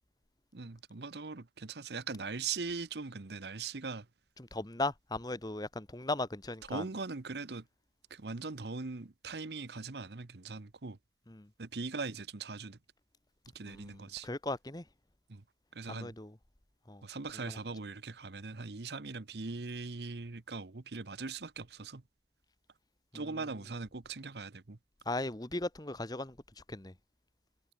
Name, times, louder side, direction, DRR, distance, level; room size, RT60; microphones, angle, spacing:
voice 1, 0.5-4.1 6.7-7.6 8.1-11.0 11.6-12.8 13.5-14.3 15.3-15.4 15.7-16.1 17.0-22.0 23.1-24.8, right 4 dB, 70° right, 1.0 m, -40 dB
voice 2, 4.5-6.8 11.3-11.5 13.7-14.0 14.2-14.8 15.9-16.3 16.9-17.0 25.1-26.3 26.7-26.9, left 2 dB, 20° left, 1.2 m, -37 dB
head